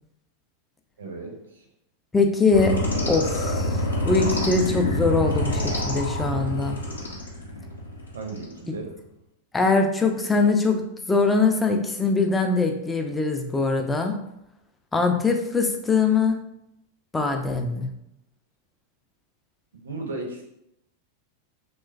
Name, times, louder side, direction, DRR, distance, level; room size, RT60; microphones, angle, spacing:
voice 1, 1.0-1.7 8.1-8.9 19.7-20.4, right 3 dB, 70° right, 1 dB, 0.5 m, -35 dB
voice 2, 2.1-2.8 3.1-6.8 9.5-14.2 14.9-16.4 17.1-17.9, left 4 dB, 10° left, 4 dB, 0.3 m, -22 dB
sound 1, 2.5-8.5, left 1 dB, 75° left, 0.5 m, -27 dB
3.0 x 2.2 x 2.3 m, 0.81 s
figure-of-eight pair, 90°, 0 cm